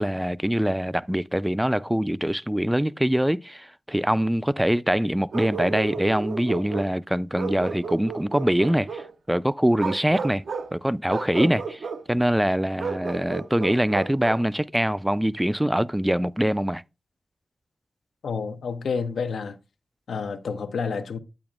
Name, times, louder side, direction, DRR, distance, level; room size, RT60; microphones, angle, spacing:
voice 1, 0.0-10.4 10.7-16.8, equal, 5° right, 0.3 m, -24 dB
Bark, 5.3-6.9 7.4-9.1 9.7-10.7 11.1-12.0 12.8-14.5, right 5 dB, 75° right, 0.6 m, -33 dB
voice 2, 18.2-19.6 20.1-21.2, left 5 dB, 85° left, 0.7 m, -29 dB
8.8 x 8.5 x 2.4 m
cardioid pair, 50°, 0 cm